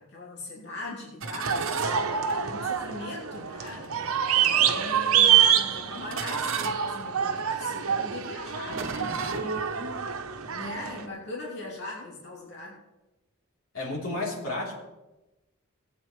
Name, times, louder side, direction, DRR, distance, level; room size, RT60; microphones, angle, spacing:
voice 1, 0.0-4.1 4.4-9.7 10.5-12.8, left 2 dB, 50° left, -5 dB, 3.0 m, -41 dB
sound 1, 1.2-2.9 3.7-3.9 4.6-5.2 5.9-10.0, right 4 dB, 60° right, 0.9 m, -37 dB
sound 2, 1.4-11.0, right 8 dB, 90° right, 0.9 m, -26 dB
voice 2, 13.7-14.8, left 2 dB, 75° left, -4 dB, 3.4 m, -32 dB
18.5 x 8.7 x 3.2 m, 1.0 s
head